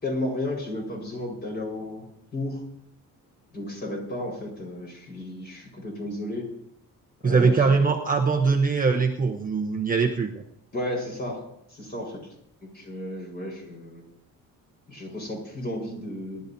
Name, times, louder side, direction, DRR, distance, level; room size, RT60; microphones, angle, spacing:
voice 1, 0.0-2.1 2.3-2.6 3.5-6.5 7.2-7.8 10.7-12.3 12.6-14.0 14.9-16.5, left 1 dB, 30° left, -1 dB, 4.7 m, -33 dB
voice 2, 7.2-10.4, right 4 dB, 25° right, 1 dB, 0.9 m, -22 dB
25.5 x 12.0 x 2.7 m, 0.77 s
cardioid pair, 160°, 35 cm